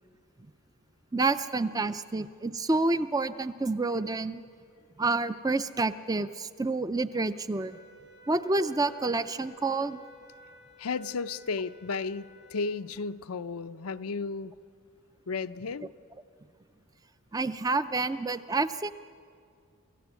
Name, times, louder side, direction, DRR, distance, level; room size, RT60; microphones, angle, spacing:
voice 1, 1.1-4.4 5.0-7.8 8.3-10.0 17.3-18.9, right 3 dB, 15° right, 12 dB, 0.5 m, -28 dB
sound 1, 7.6-12.8, right 1 dB, 55° right, 2.4 m, -54 dB
voice 2, 10.8-14.5 15.3-15.9, left 4 dB, 85° left, 10 dB, 0.6 m, -33 dB
28.0 x 14.5 x 8.3 m, 2.3 s
head